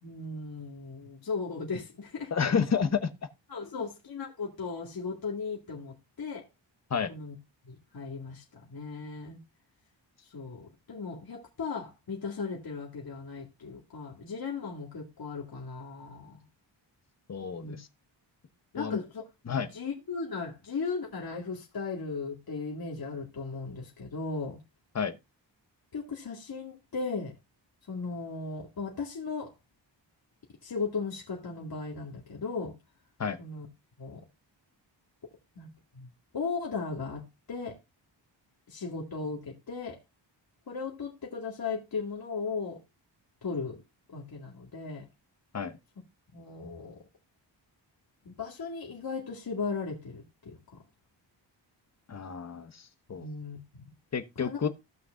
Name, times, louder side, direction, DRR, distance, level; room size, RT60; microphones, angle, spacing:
voice 1, 0.0-2.3 3.5-6.5 7.1-7.4 7.6-9.4 10.2-16.4 17.6-17.8 18.7-19.2 19.6-24.6 25.9-27.3 27.9-29.5 30.6-32.7 33.4-33.7 34.0-34.2 35.6-37.2 37.5-37.8 38.7-40.0 40.7-42.8 43.4-43.8 44.1-45.0 46.3-47.0 48.3-50.8 53.1-53.8 54.4-54.7, left 4 dB, 50° left, 2.1 m, -37 dB
voice 2, 2.3-3.1 6.9-7.1 17.3-17.9 18.8-19.0 19.5-19.7 24.9-25.1 33.2-33.4 45.5-45.8 52.1-53.3 54.1-54.7, left 6 dB, 35° left, 0.9 m, -30 dB
15.5 x 5.9 x 2.5 m
wide cardioid pair, 145°, 45 cm